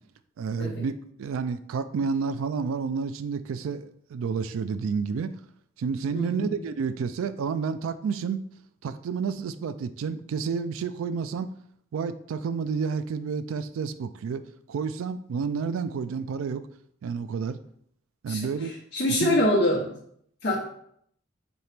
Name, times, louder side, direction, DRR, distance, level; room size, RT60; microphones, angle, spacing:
voice 1, 0.4-5.3 5.8-8.4 8.8-11.5 11.9-14.4 14.7-16.7 17.0-17.6 18.2-18.7 19.2-19.4, right 5 dB, 85° right, 13 dB, 0.3 m, -30 dB
voice 2, 6.1-6.6 18.3-19.8 20.4-20.6, left 1 dB, 50° left, -5 dB, 0.8 m, -25 dB
4.3 x 2.8 x 3.4 m, 0.68 s
head